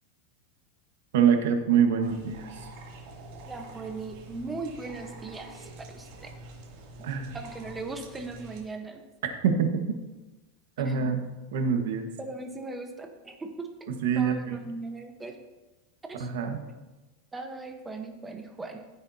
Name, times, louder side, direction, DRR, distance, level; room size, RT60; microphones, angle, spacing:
voice 1, 1.1-2.7 7.0-7.4 9.2-9.8 10.8-11.2 11.5-12.1 14.0-14.5 16.2-16.6, right 7 dB, 75° right, 5 dB, 1.5 m, -25 dB
sound 1, 2.0-8.6, right 2 dB, 55° right, 2.8 m, -46 dB
voice 2, 3.4-6.3 7.3-9.0 10.8-11.2 12.2-15.4 16.1-16.3 16.7-16.8 17.3-18.8, right 3 dB, 10° right, 4 dB, 1.1 m, -39 dB
15.5 x 8.2 x 2.8 m, 1.1 s
supercardioid pair, 150°, 0 cm